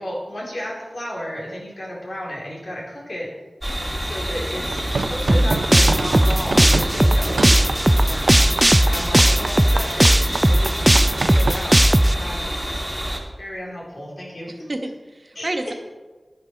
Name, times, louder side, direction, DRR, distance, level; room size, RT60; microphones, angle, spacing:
voice 1, 0.0-3.3 4.0-8.3 8.9-12.9 13.4-14.7 15.4-15.7, equal, 75° left, -4 dB, 3.7 m, -33 dB
sound 1, 3.6-13.2, equal, ahead, 2.3 m, -28 dB
sound 2, 4.6-11.6, right 3 dB, 90° right, 0.5 m, -28 dB
sound 3, 5.3-12.1, right 1 dB, 20° right, 0.3 m, -16 dB
voice 2, 14.5-15.7, right 1 dB, 50° right, 4 dB, 1.3 m, -30 dB
11.5 x 10.5 x 4.5 m, 1.3 s
cardioid pair, 45°, 0 cm